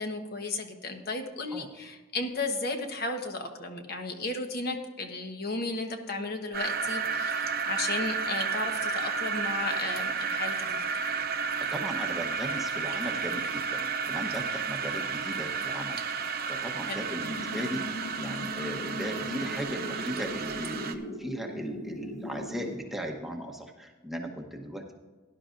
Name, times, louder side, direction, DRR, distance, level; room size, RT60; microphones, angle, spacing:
voice 1, 0.0-10.8 16.9-17.0, left 2 dB, 50° left, 5 dB, 1.1 m, -34 dB
sound 1, 6.5-20.9, right 5 dB, 45° right, 0.7 m, -32 dB
voice 2, 11.7-24.9, equal, ahead, 1 dB, 0.9 m, -37 dB
sound 2, 17.2-22.8, equal, 85° left, 1.6 m, -39 dB
17.5 x 11.0 x 2.6 m, 1.3 s
head